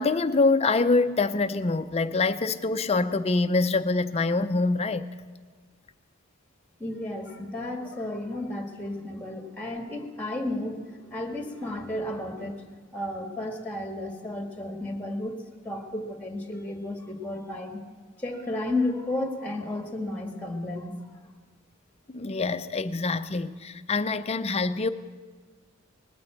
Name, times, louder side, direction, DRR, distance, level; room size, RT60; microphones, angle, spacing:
voice 1, 0.0-5.1 22.1-24.9, left 3 dB, 30° left, 0.5 m, -25 dB
voice 2, 6.8-12.7 12.9-15.3 15.6-17.8 18.2-21.1, left 1 dB, 10° left, 1.5 m, -33 dB
19.5 x 9.5 x 7.8 m
head